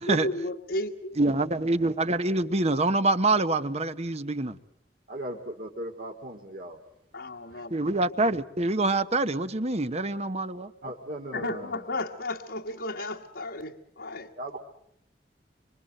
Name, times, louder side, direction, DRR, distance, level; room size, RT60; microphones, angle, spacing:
voice 1, 0.1-1.2 7.1-7.8 11.3-14.3, left 1 dB, 75° left, 1.6 m, -33 dB
voice 2, 1.2-4.6 7.7-10.7, right 2 dB, 40° right, 1.1 m, -25 dB
voice 3, 5.1-6.8 7.5-7.6 10.8-11.8 14.4-14.6, right 1 dB, 55° right, 2.5 m, -38 dB
26.0 x 25.5 x 7.8 m
head